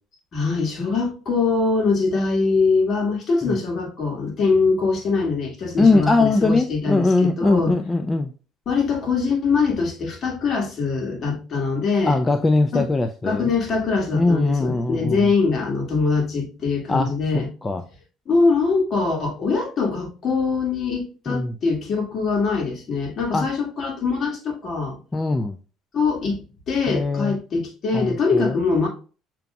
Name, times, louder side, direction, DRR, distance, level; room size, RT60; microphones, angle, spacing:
voice 1, 0.3-7.8 8.7-12.2 12.7-12.9 13.2-17.5 18.3-25.0 25.9-26.4 26.7-28.9, left 4 dB, 50° left, 1.8 m, -23 dB
voice 2, 5.8-8.3 12.1-13.5 14.1-15.3 16.9-17.8 21.3-21.5 23.3-23.5 25.1-25.6 26.9-27.4 27.9-28.6, left 3 dB, 20° left, 0.5 m, -21 dB
6.7 x 3.0 x 2.3 m
hypercardioid pair, 65°, 0 cm